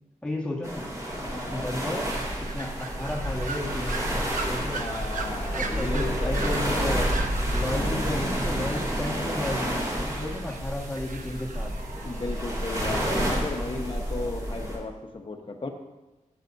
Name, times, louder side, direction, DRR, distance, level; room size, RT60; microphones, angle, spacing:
voice 1, 0.2-0.9 1.5-4.9 5.5-7.1 7.5-11.7, left 1 dB, 10° left, -3 dB, 1.7 m, -33 dB
sound 1, 0.6-14.8, equal, 25° right, 2.8 m, -29 dB
voice 2, 1.3-1.7 4.7-6.6 7.6-8.1 12.0-15.7, left 3 dB, 40° left, 3 dB, 1.2 m, -35 dB
sound 2, 2.1-12.8, right 4 dB, 80° right, 0.9 m, -40 dB
14.5 x 8.1 x 2.7 m, 1.1 s
wide cardioid pair, 115°, 13 cm